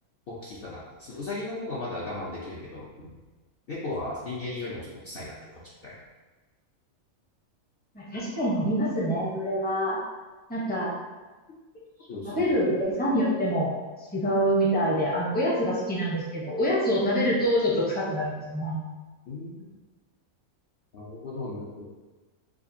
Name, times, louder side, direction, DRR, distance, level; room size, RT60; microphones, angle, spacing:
voice 1, 0.3-3.2 3.7-6.0 12.1-12.5 19.3-19.6 20.9-21.9, left 2 dB, 55° left, -7 dB, 0.7 m, -36 dB
voice 2, 7.9-10.0 10.5-10.9 12.3-13.7 14.1-18.8, equal, 10° left, -5 dB, 0.6 m, -26 dB
4.9 x 2.4 x 2.7 m, 1.2 s
omnidirectional pair, 1.4 m